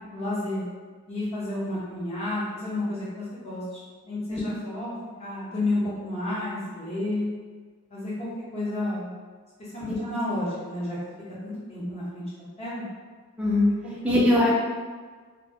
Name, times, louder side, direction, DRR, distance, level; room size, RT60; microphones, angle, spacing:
voice 1, 0.1-0.6 1.1-3.6 4.1-4.9 5.2-7.3 7.9-8.3 8.5-9.1 9.7-11.0 11.4-12.9 14.0-14.2, left 1 dB, 30° left, -8 dB, 0.9 m, -31 dB
voice 2, 14.0-14.5, left 1 dB, 5° right, -6 dB, 0.5 m, -21 dB
2.1 x 2.0 x 3.4 m, 1.5 s
head